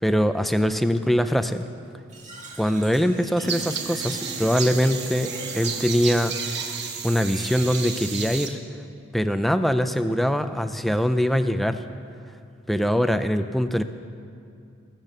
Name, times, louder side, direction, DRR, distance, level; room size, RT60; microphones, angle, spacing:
voice 1, 0.0-1.6 2.6-6.6 7.0-8.6 9.1-11.8 12.7-13.8, equal, ahead, 9 dB, 0.4 m, -23 dB
Fill (with liquid), 2.1-7.1, right 2 dB, 35° right, 1.8 m, -40 dB
sound 1, 3.5-8.5, right 6 dB, 55° right, 1.1 m, -32 dB
20.5 x 7.6 x 6.7 m, 2.5 s
head